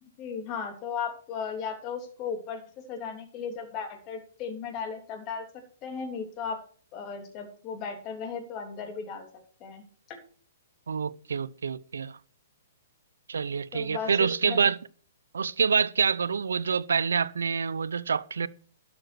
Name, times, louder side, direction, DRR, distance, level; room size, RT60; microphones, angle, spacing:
voice 1, 0.2-2.6 2.9-5.4 5.8-6.6 6.9-9.3 9.6-10.2 13.7-14.6, left 6 dB, 35° left, 3.2 m, -36 dB
voice 2, 10.9-12.2 13.3-14.8 15.3-18.5, right 6 dB, 80° right, 0.7 m, -27 dB
12.0 x 7.0 x 6.0 m
hypercardioid pair, 125°, 0 cm